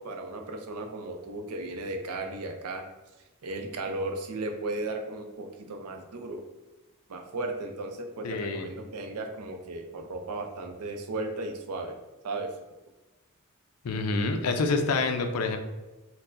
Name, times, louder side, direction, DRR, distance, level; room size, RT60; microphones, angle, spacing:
voice 1, 0.0-2.9 3.4-6.4 7.1-12.0 12.2-12.6, right 2 dB, 90° right, 5 dB, 0.5 m, -35 dB
voice 2, 8.2-8.7 13.8-15.6, left 3 dB, 75° left, 6 dB, 0.4 m, -27 dB
4.4 x 2.0 x 2.5 m, 1.1 s
head